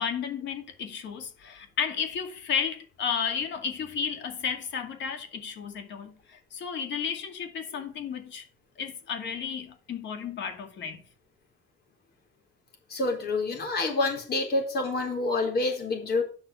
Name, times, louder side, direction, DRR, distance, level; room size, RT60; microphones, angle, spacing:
voice 1, 0.0-8.4 8.8-11.0, left 7 dB, 70° left, 2.2 m, -33 dB
voice 2, 12.9-16.2, left 2 dB, 55° left, 4.2 m, -27 dB
9.0 x 6.1 x 4.7 m
cardioid pair, 125°, 19 cm